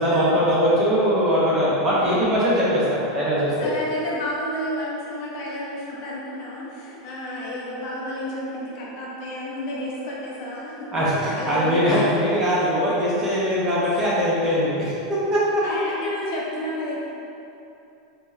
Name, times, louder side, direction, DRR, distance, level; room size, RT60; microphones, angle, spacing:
voice 1, 0.0-2.8 3.1-3.5 10.9-15.4, equal, 20° right, -8 dB, 0.9 m, -21 dB
voice 2, 3.6-12.0 13.9-14.1 15.6-17.1, left 1 dB, 45° left, -5 dB, 0.8 m, -31 dB
4.3 x 2.8 x 3.3 m, 2.8 s
supercardioid pair, 165°, 2 cm